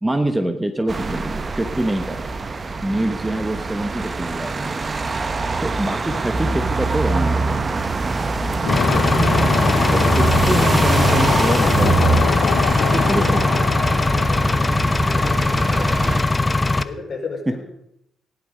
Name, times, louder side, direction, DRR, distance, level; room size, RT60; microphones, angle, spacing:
voice 1, 0.0-2.3 2.8-4.9 5.6-7.6 9.9-12.4 12.9-13.5 17.5-17.6, right 1 dB, 10° right, 8 dB, 1.2 m, -25 dB
sound 1, 0.9-16.2, right 4 dB, 30° right, 1.0 m, -24 dB
voice 2, 3.0-3.4 12.8-13.4 13.8-16.2 16.7-17.6, left 3 dB, 50° left, 1 dB, 4.6 m, -35 dB
sound 2, 8.5-15.1, left 9 dB, 75° left, 0.9 m, -25 dB
Engine, 8.7-16.8, left 2 dB, 20° left, 0.7 m, -20 dB
16.5 x 11.0 x 5.2 m, 0.78 s
cardioid pair, 90°, 0 cm